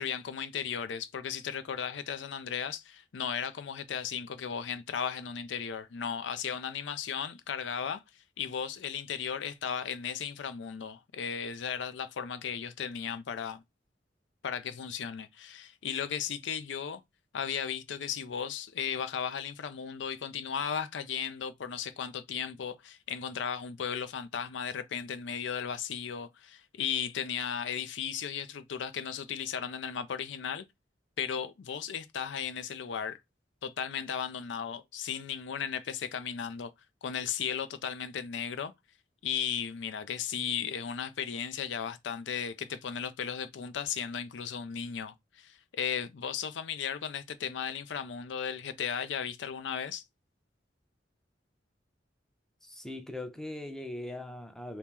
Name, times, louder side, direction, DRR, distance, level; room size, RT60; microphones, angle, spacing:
voice 1, 0.0-8.0 8.4-13.6 14.4-17.0 17.3-30.6 31.2-33.2 33.6-36.7 37.0-38.7 39.2-50.0, left 7 dB, 85° left, 0.4 m, -35 dB
voice 2, 52.6-54.8, left 1 dB, 5° left, 0.5 m, -40 dB
2.9 x 2.9 x 3.5 m
head